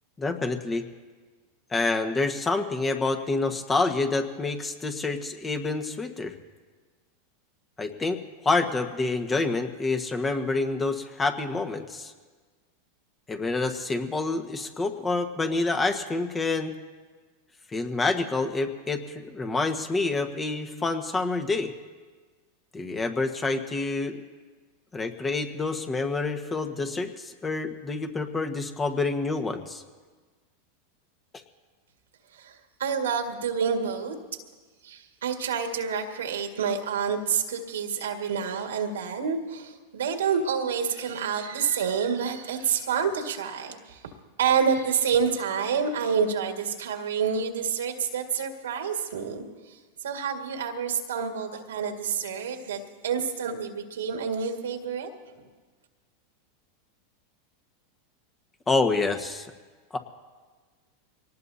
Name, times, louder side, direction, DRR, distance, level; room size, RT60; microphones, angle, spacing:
voice 1, 0.2-0.9 1.7-6.3 7.8-12.1 13.3-16.7 17.7-21.7 22.7-24.2 24.9-29.8 58.7-59.5 59.9-60.0, left 3 dB, 20° left, 6 dB, 1.4 m, -27 dB
voice 2, 32.3-34.2 34.8-44.1 44.4-55.4, right 6 dB, 85° right, 3 dB, 2.0 m, -28 dB
24.0 x 19.0 x 2.8 m, 1.4 s
hypercardioid pair, 105°, 0 cm